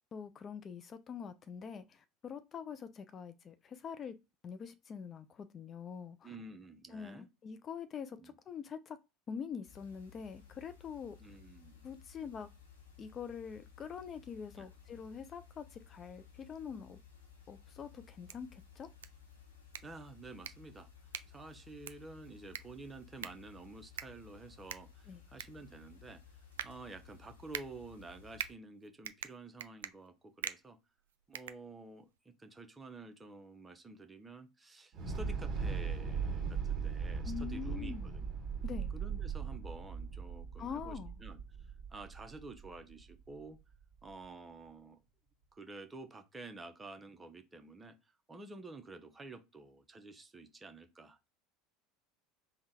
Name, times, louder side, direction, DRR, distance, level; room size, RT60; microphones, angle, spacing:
voice 1, 0.1-4.2 4.4-6.3 6.9-9.0 9.3-11.2 11.8-12.5 13.0-17.0 17.5-18.9 25.1-25.2 37.2-38.2 38.6-38.9 40.6-41.1, left 7 dB, 35° left, 0.4 m, -44 dB
voice 2, 6.2-7.3 8.2-8.3 11.2-11.8 14.6-14.7 19.8-20.9 21.3-26.2 26.6-30.8 31.3-38.2 38.9-43.6 44.0-45.0 45.5-48.0 48.3-51.3, right 3 dB, 20° right, 0.8 m, -50 dB
sound 1, 9.7-28.5, left 7 dB, 90° left, 1.0 m, -58 dB
sound 2, 18.1-32.2, right 10 dB, 75° right, 0.3 m, -47 dB
Thunder / Explosion, 34.9-43.1, right 5 dB, 40° right, 1.6 m, -38 dB
3.6 x 2.3 x 4.1 m
hypercardioid pair, 75°, 0 cm